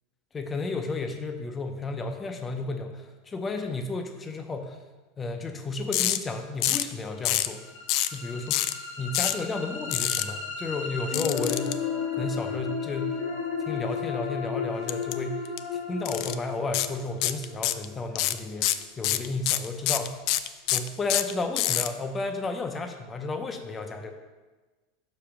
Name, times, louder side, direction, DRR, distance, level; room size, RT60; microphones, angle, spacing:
voice 1, 0.3-4.8 5.2-7.6 8.1-8.5 9.0-11.8 12.2-13.2 13.6-15.4 15.7-20.2 20.7-24.1, left 3 dB, 15° left, 5 dB, 0.7 m, -32 dB
sound 1, 5.9-6.2 6.6-6.9 7.2-7.5 7.9-8.2 8.5-8.7 9.1-9.4 9.9-10.2 11.1-11.7 14.9-15.1 15.4-15.6 16.0-16.3 16.7-16.9 17.2-17.8 18.1-21.9, left 14 dB, 50° left, 0.4 m, -25 dB
sound 2, 7.4-19.3, left 6 dB, 70° left, 1.0 m, -34 dB
6.0 x 5.0 x 5.9 m, 1.2 s
supercardioid pair, 145°, 0 cm